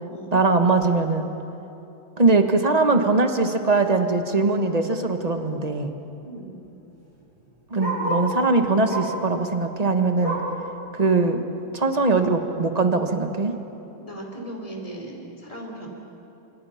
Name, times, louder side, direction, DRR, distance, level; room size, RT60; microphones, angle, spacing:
voice 1, 0.3-1.3 2.2-5.9 7.7-10.4 10.9-11.4 11.7-13.5, right 3 dB, 25° right, 6 dB, 1.1 m, -21 dB
Bark, 6.2-8.4 8.8-9.3 9.6-10.6 11.1-11.2 11.6-11.7 12.4-12.5, right 2 dB, 50° right, 7.9 m, -31 dB
voice 2, 14.0-15.9, right 1 dB, 15° left, 0 dB, 4.2 m, -37 dB
28.0 x 27.0 x 5.8 m, 3.0 s
omnidirectional pair, 2.3 m